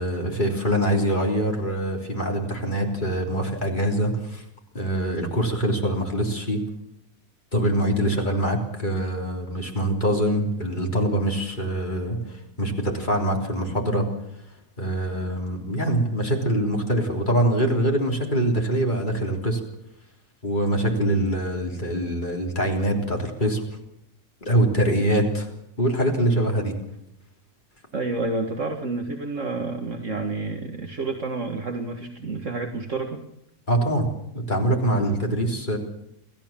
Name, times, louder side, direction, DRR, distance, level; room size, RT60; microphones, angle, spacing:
voice 1, 0.0-4.4 4.7-6.6 7.5-14.1 14.8-19.6 20.4-23.6 24.4-25.5 25.8-26.7 33.7-34.1 34.3-35.8, right 1 dB, 30° left, 1 dB, 3.7 m, -24 dB
voice 2, 27.9-33.2 34.9-35.1, right 3 dB, 55° right, 4 dB, 2.0 m, -29 dB
28.5 x 13.5 x 7.4 m, 0.81 s
omnidirectional pair, 1.6 m